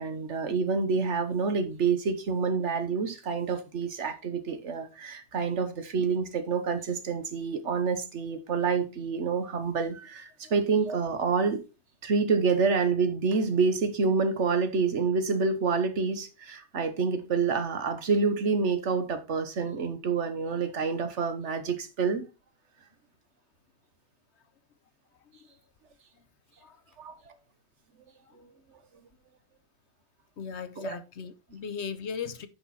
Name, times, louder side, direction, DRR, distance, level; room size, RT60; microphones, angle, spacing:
voice 1, 0.0-11.6 12.0-22.3 27.0-27.1 30.8-31.0, right 5 dB, 90° right, 1.5 m, -27 dB
voice 2, 30.4-32.5, left 6 dB, 75° left, 1.2 m, -37 dB
10.0 x 5.4 x 4.2 m
omnidirectional pair, 1.2 m